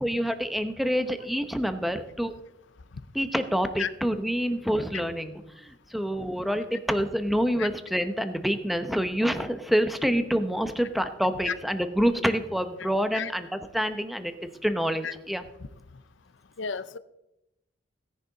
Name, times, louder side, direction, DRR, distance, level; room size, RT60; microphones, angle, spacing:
voice 1, 0.0-2.3 3.1-14.3 14.6-15.4, equal, ahead, 8 dB, 0.9 m, -27 dB
voice 2, 16.6-17.0, left 6 dB, 70° left, 15 dB, 0.6 m, -31 dB
17.0 x 10.5 x 4.0 m, 0.89 s
head